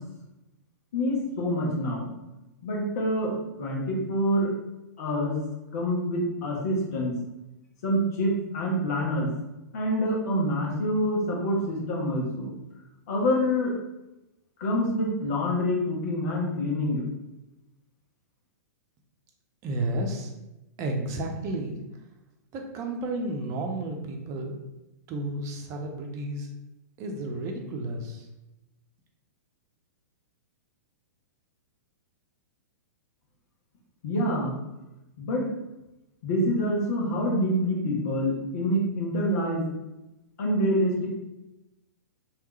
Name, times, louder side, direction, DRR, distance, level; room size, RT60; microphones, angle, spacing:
voice 1, 0.9-2.1 2.6-4.5 5.0-5.4 5.7-7.2 7.8-9.3 9.7-12.5 13.1-13.7 14.6-17.1 34.0-34.5 35.2-35.5 36.2-39.7 40.4-41.1, equal, 60° left, -2 dB, 1.3 m, -26 dB
voice 2, 19.6-20.3 20.8-21.8 22.5-24.6 25.1-26.5 27.0-28.3, right 1 dB, 35° right, 2 dB, 0.8 m, -32 dB
3.5 x 3.2 x 3.1 m, 0.96 s
hypercardioid pair, 115°, 10 cm